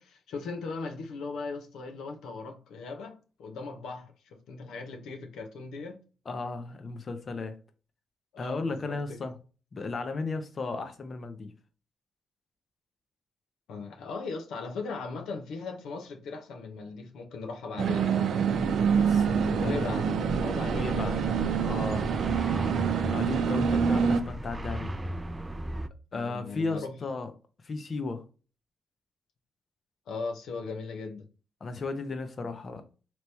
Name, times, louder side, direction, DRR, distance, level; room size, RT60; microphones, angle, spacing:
voice 1, 0.0-6.0 8.3-9.2 13.7-18.2 19.5-20.0 20.4-21.2 26.1-27.0 30.1-31.3, left 4 dB, 80° left, 0.7 m, -38 dB
voice 2, 6.3-7.6 8.4-9.4 9.7-11.5 18.9-19.9 20.7-21.2 21.6-22.1 23.1-24.9 26.1-27.3 27.6-28.2 31.6-32.8, left 3 dB, 45° left, 0.7 m, -35 dB
sound 1, 17.8-24.2, right 6 dB, 70° right, 0.5 m, -26 dB
sound 2, 18.5-25.9, right 1 dB, 20° right, 0.4 m, -36 dB
3.3 x 3.0 x 4.1 m
cardioid pair, 65°, 0 cm